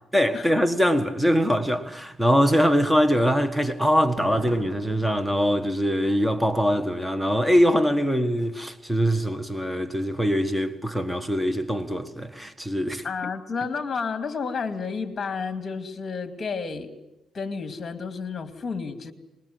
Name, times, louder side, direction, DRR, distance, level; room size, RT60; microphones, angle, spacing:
voice 1, 0.1-13.0, equal, 10° right, 1.6 m, -23 dB
Thunder, 4.0-7.9 8.2-8.3, right 5 dB, 65° right, 6.2 m, -45 dB
voice 2, 13.0-16.9 17.3-19.1, left 5 dB, 35° left, 2.5 m, -31 dB
26.5 x 21.0 x 8.0 m
cardioid pair, 90°, 0 cm